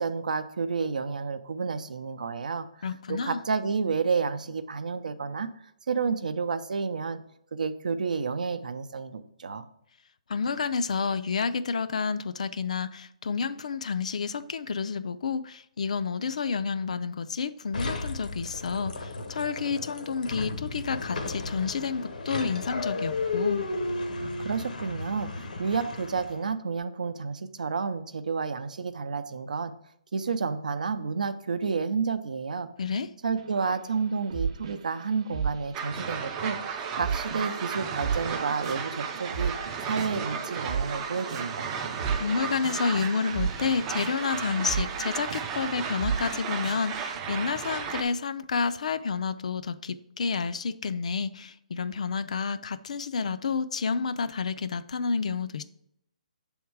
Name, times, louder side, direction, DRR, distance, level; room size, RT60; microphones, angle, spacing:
voice 1, 0.0-2.7 3.1-5.5 5.9-7.2 7.5-9.6 24.2-29.7 30.1-32.7 33.2-36.6 36.9-39.5 39.8-41.9, right 5 dB, 80° right, 0.6 m, -30 dB
voice 2, 2.8-3.4 10.3-23.7 32.8-33.1 42.2-55.6, left 5 dB, 60° left, 0.4 m, -30 dB
sound 1, 17.7-26.5, left 3 dB, 85° left, 0.9 m, -34 dB
sound 2, 33.4-35.0 35.3-47.2, right 6 dB, 40° right, 0.7 m, -35 dB
sound 3, 35.7-48.0, right 6 dB, 15° right, 0.3 m, -34 dB
7.1 x 3.6 x 4.6 m
hypercardioid pair, 170°, 4 cm